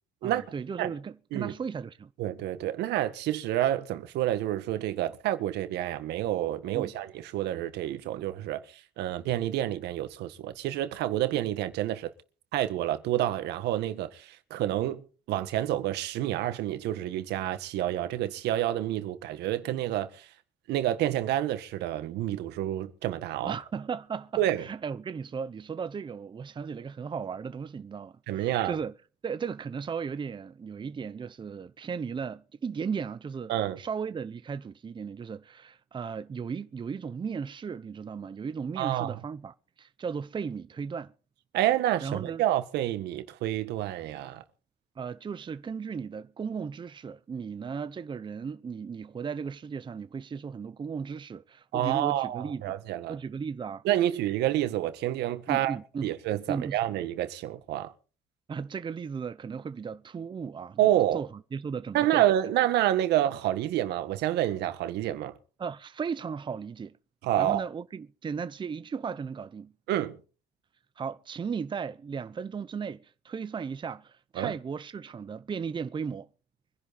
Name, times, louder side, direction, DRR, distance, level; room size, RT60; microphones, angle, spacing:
voice 1, 0.2-2.1 6.7-6.9 23.5-28.9 29.2-41.1 42.0-42.4 45.0-52.7 53.1-53.8 55.5-56.1 56.5-56.8 58.5-62.2 65.6-67.0 67.4-69.7 71.0-76.3, right 6 dB, 30° right, 0.8 m, -36 dB
voice 2, 2.2-12.1 12.5-20.3 20.7-23.5 24.4-24.6 28.3-28.8 33.5-33.8 38.8-39.2 41.5-44.4 51.7-53.2 53.8-55.8 56.0-57.9 60.8-61.2 61.9-65.4 67.2-67.6 69.9-70.2 74.3-74.5, right 13 dB, 80° right, 1.8 m, -28 dB
24.5 x 11.0 x 4.3 m
cardioid pair, 110°, 17 cm